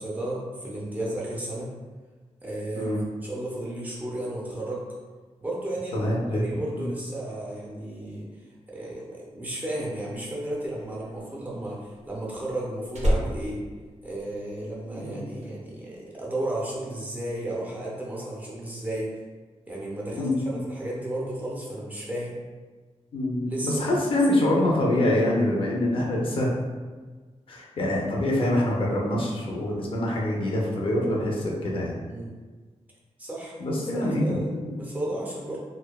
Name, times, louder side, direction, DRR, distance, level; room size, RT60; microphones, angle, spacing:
voice 1, 0.0-1.7 2.4-2.9 3.2-4.9 5.4-8.3 8.7-13.6 14.0-19.1 19.7-22.3 23.5-24.0 32.1-32.3 33.2-33.5 33.9-35.6, right 1 dB, 15° right, -5 dB, 0.5 m, -33 dB
voice 2, 5.9-6.9 15.0-15.2 20.2-20.6 23.1-26.6 27.5-32.0 33.6-34.7, left 1 dB, 45° left, -3 dB, 0.5 m, -25 dB
Slam, 10.6-14.7 15.0-15.4, equal, 75° right, 0.5 m, -30 dB
2.7 x 2.1 x 2.2 m, 1.4 s
wide cardioid pair, 160°, 12 cm